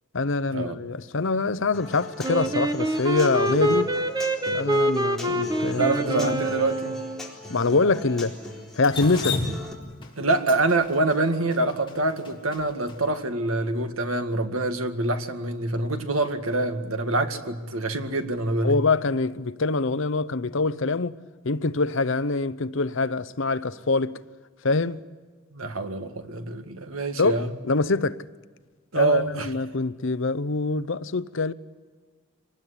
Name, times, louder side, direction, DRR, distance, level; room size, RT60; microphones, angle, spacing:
voice 1, 0.1-4.0 4.5-6.4 7.5-8.4 8.8-9.4 18.6-21.2 21.4-24.2 24.6-25.0 27.2-28.2 28.9-31.5, left 3 dB, 65° left, 0.8 m, -25 dB
Human voice / Acoustic guitar, 1.7-9.7, left 2 dB, ahead, 4.0 m, -40 dB
Wind instrument woodwind instrument, 2.2-7.3, right 1 dB, 20° right, 1.4 m, -26 dB
voice 2, 5.8-7.0 10.2-18.8 25.5-27.5 28.9-29.5, right 2 dB, 85° right, 2.0 m, -25 dB
Drip, 8.8-13.0, left 3 dB, 25° left, 3.0 m, -32 dB
25.5 x 19.5 x 9.9 m
head